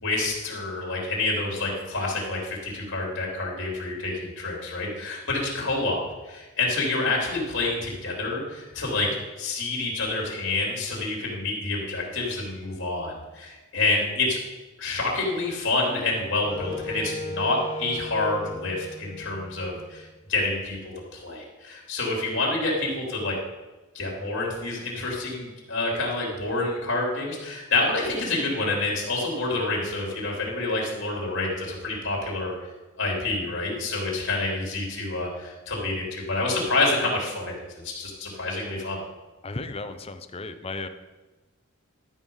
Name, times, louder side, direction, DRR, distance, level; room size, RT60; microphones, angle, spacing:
voice 1, 0.0-9.1 9.4-14.4 14.8-20.0 20.3-23.4 23.9-32.5 33.0-37.5 37.8-39.0, left 2 dB, 55° left, -2 dB, 3.3 m, -28 dB
Wind instrument woodwind instrument, 15.8-20.0, left 1 dB, 20° right, 2.5 m, -37 dB
voice 2, 39.4-40.9, left 3 dB, 25° left, 9 dB, 0.6 m, -35 dB
12.5 x 6.3 x 5.5 m, 1.2 s
head